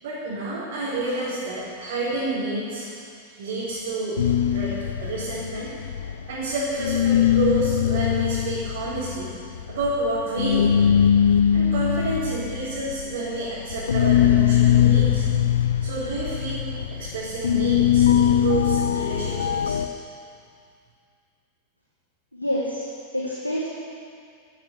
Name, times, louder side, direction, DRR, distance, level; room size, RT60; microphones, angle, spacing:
voice 1, 0.0-2.9 3.4-4.2 4.5-4.7 5.0-5.7 6.3-9.3 9.7-10.9 11.5-15.3 15.8-16.6 16.9-19.8, right 2 dB, 55° right, -9 dB, 4.2 m, -29 dB
sound 1, 4.2-6.5 6.8-19.9, left 9 dB, 65° left, 0.6 m, -21 dB
voice 2, 22.3-22.8 23.1-23.6, equal, 85° left, -4 dB, 1.8 m, -27 dB
13.5 x 12.5 x 6.7 m, 2.3 s
figure-of-eight pair, 90°, 0 cm